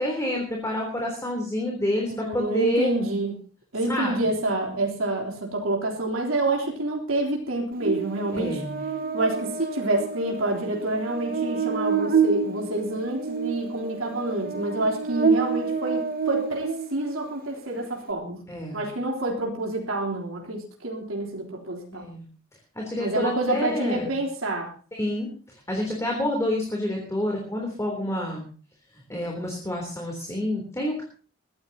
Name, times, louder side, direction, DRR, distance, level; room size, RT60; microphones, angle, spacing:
voice 1, 0.0-2.9 3.9-4.2 8.3-8.8 18.5-18.8 21.9-22.3 22.7-24.0 24.9-28.4 29.1-31.0, left 1 dB, 15° left, 0 dB, 3.5 m, -28 dB
voice 2, 2.2-3.4 3.7-8.6 9.1-18.4 18.7-22.1 23.0-24.7, right 2 dB, 90° right, -1 dB, 3.6 m, -28 dB
Buzz, 7.8-17.3, right 5 dB, 45° right, 0.8 m, -28 dB
22.0 x 15.0 x 2.9 m, 0.40 s
head